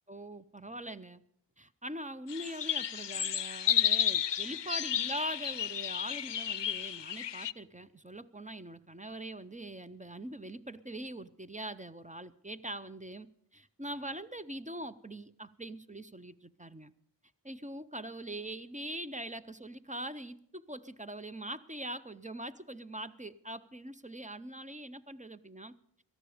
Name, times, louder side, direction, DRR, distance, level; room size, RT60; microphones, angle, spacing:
voice 1, 0.1-1.2 1.6-16.9 17.4-25.8, right 1 dB, 15° right, 12 dB, 0.6 m, -42 dB
sound 1, 2.3-7.5, left 9 dB, 70° left, 0.5 m, -32 dB
18.0 x 13.5 x 5.0 m, 0.72 s
wide cardioid pair, 45°, 44 cm